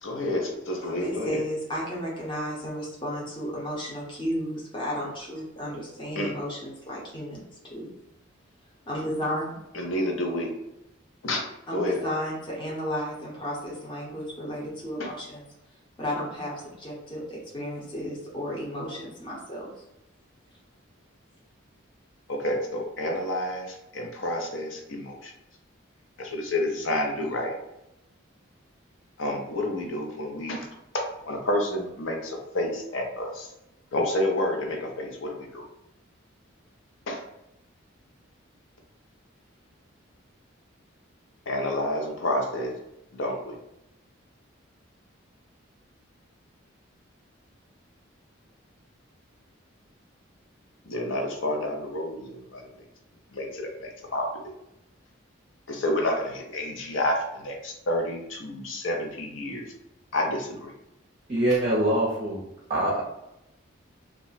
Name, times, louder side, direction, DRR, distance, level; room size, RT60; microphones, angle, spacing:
voice 1, 0.0-1.4 6.1-6.3 9.7-10.5 11.2-12.0 22.3-25.3 26.2-27.5 29.2-30.7 30.9-33.5 33.9-35.6 37.1-37.2 41.5-42.7 43.1-43.6 50.8-52.8 53.3-54.5 55.7-59.7 60.1-60.7, left 1 dB, 70° left, 2 dB, 0.6 m, -29 dB
voice 2, 0.9-7.4 7.7-7.9 8.9-9.6 11.7-15.4 16.0-19.8, equal, 25° left, -5 dB, 0.7 m, -33 dB
voice 3, 61.3-62.4 62.7-63.0, right 1 dB, 35° right, -5 dB, 0.5 m, -24 dB
2.3 x 2.1 x 3.9 m, 0.86 s
head